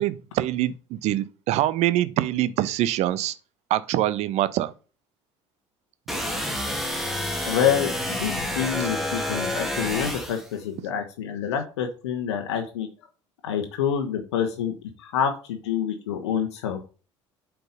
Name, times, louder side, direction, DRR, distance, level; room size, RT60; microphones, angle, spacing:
voice 1, 0.0-3.3 3.7-4.7, right 14 dB, 45° right, 0.7 m, -24 dB
sound 1, 6.1-10.5, left 1 dB, ahead, 2.0 m, -29 dB
voice 2, 7.4-12.9 13.4-14.7 15.0-16.8, left 8 dB, 65° left, 1.1 m, -27 dB
7.8 x 4.6 x 5.3 m
figure-of-eight pair, 60°, 15 cm